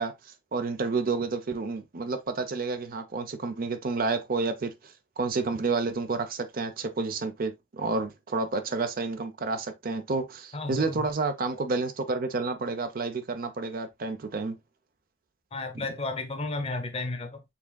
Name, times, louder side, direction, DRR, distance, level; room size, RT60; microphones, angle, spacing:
voice 1, 0.0-14.6, right 3 dB, 50° right, 0.6 m, -30 dB
voice 2, 10.5-11.1 15.5-17.4, left 2 dB, 35° left, 0.9 m, -33 dB
6.0 x 3.6 x 2.2 m
head